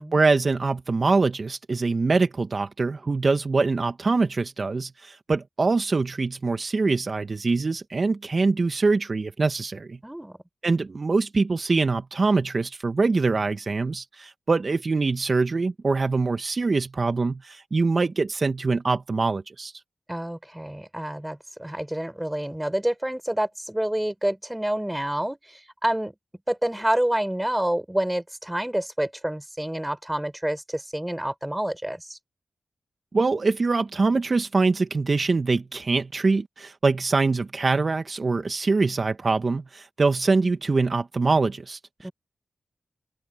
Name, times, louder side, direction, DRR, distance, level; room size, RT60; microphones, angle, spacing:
voice 1, 0.0-10.0 10.6-19.7 33.1-42.1, right 3 dB, 55° right, 1.3 m, -24 dB
voice 2, 10.0-10.4 20.1-26.1 26.5-32.2 42.0-42.1, right 1 dB, 10° right, 4.6 m, -28 dB
open air
cardioid pair, 40°, 0 cm